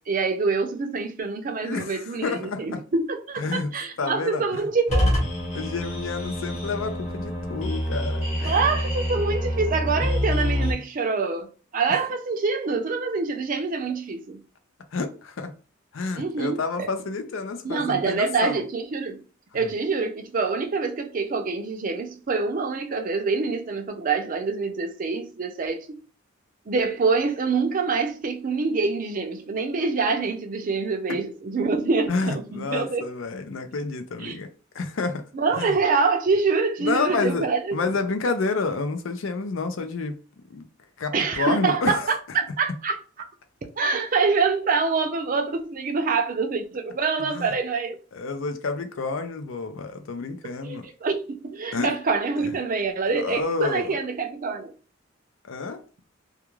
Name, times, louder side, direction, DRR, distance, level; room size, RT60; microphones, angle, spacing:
voice 1, 0.1-5.1 8.4-11.5 11.7-14.4 16.2-16.9 17.6-19.2 19.5-26.0 26.7-33.0 34.2-34.4 35.3-37.8 41.1-43.0 43.8-48.0 50.6-54.7, right 4 dB, 45° right, 0.5 m, -25 dB
voice 2, 1.6-2.8 3.4-3.7 4.0-4.7 5.5-8.6 14.9-15.5 15.9-18.6 19.5-19.7 32.1-34.5 34.7-35.3 35.5-35.7 36.8-40.1 40.5-40.7 41.0-42.1 47.3-47.5 48.1-50.9 51.7-51.9 52.4-52.5 53.1-54.0 55.5-55.8, left 4 dB, 75° left, 0.5 m, -29 dB
sound 1, 4.9-10.7, equal, 35° left, 1.0 m, -26 dB
2.3 x 2.3 x 3.0 m
head